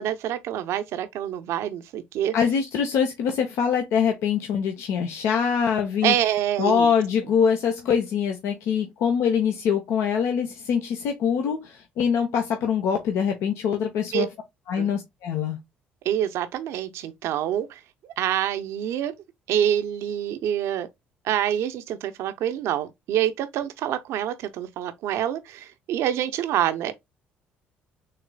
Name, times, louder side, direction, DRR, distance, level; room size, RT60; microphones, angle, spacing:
voice 1, 0.0-2.3 6.0-6.9 14.1-14.3 14.8-14.9 16.0-17.8 18.2-19.1 19.5-20.9 21.2-26.9, right 11 dB, 70° right, 0.7 m, -26 dB
voice 2, 2.3-6.1 6.6-14.3 14.7-15.6, left 7 dB, 70° left, 0.8 m, -24 dB
6.6 x 3.2 x 2.2 m
supercardioid pair, 65°, 5 cm